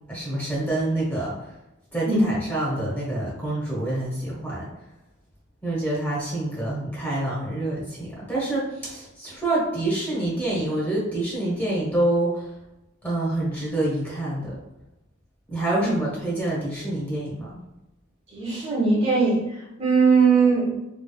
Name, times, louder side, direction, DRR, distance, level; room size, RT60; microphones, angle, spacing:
voice 1, 0.1-1.5 1.9-4.7 5.6-12.5 13.0-14.6 15.5-17.6, right 1 dB, 10° left, -6 dB, 1.2 m, -27 dB
voice 2, 18.3-19.4 19.8-20.8, right 4 dB, 30° right, -5 dB, 1.1 m, -19 dB
3.7 x 3.3 x 2.2 m, 0.94 s
head